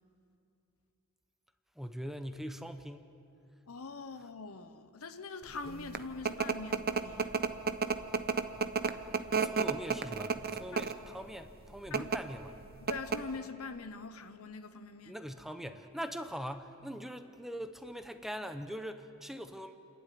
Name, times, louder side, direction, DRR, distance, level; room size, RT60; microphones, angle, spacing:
voice 1, 1.8-3.0 9.4-12.6 15.1-19.8, equal, ahead, 8 dB, 0.8 m, -42 dB
voice 2, 3.7-7.3 11.9-12.1 12.8-15.2, left 4 dB, 75° left, 10 dB, 1.1 m, -43 dB
sound 1, 5.6-11.1 11.8-12.2 12.6-12.7 12.9-13.4, right 5 dB, 45° right, 0.8 m, -31 dB
29.5 x 11.5 x 9.4 m, 2.7 s
head